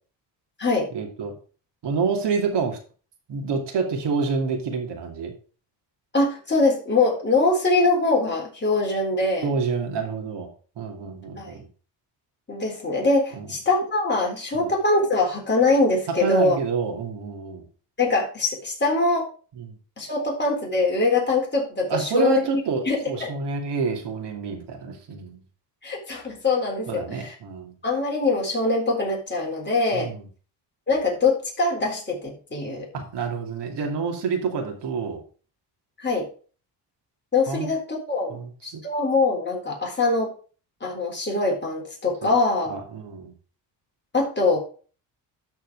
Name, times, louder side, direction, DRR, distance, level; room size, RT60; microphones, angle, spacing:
voice 1, 0.9-1.3 1.8-2.8 3.3-5.3 9.4-11.7 13.4-13.5 14.5-14.7 16.1-17.6 19.6-19.7 21.9-25.4 26.9-27.7 29.9-30.2 32.9-35.2 37.5-37.7 38.3-38.8 42.7-43.3, right 5 dB, 70° right, 2 dB, 2.7 m, -28 dB
voice 2, 6.1-9.5 11.4-11.5 12.5-16.6 18.0-19.2 20.0-22.6 22.9-23.3 25.8-27.3 27.8-30.1 30.9-32.9 36.0-36.3 37.3-37.8 38.1-38.4 38.6-40.3 40.8-42.8 44.1-44.6, left 3 dB, 25° left, -1 dB, 3.9 m, -23 dB
13.0 x 4.7 x 4.8 m, 0.39 s
cardioid pair, 110°, 43 cm